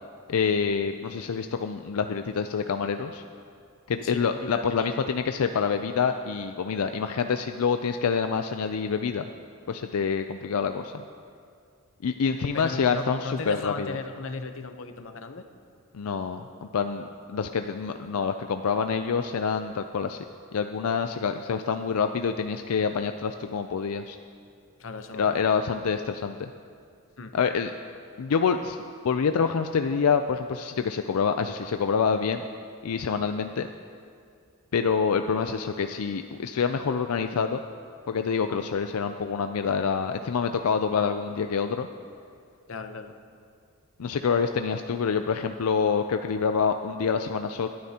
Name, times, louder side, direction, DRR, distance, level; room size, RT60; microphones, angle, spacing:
voice 1, 0.3-3.2 3.9-9.3 9.7-11.0 12.0-14.0 15.9-20.2 20.5-24.2 25.2-26.5 27.3-27.7 28.2-28.8 29.0-32.4 32.8-33.7 34.7-37.6 38.1-41.9 44.0-47.7, left 6 dB, 90° left, 7 dB, 0.4 m, -26 dB
voice 2, 4.0-5.1 12.5-15.4 24.8-25.5 27.2-27.3 42.7-43.2, left 4 dB, 65° left, 7 dB, 0.8 m, -37 dB
21.0 x 13.0 x 2.9 m, 2.3 s
head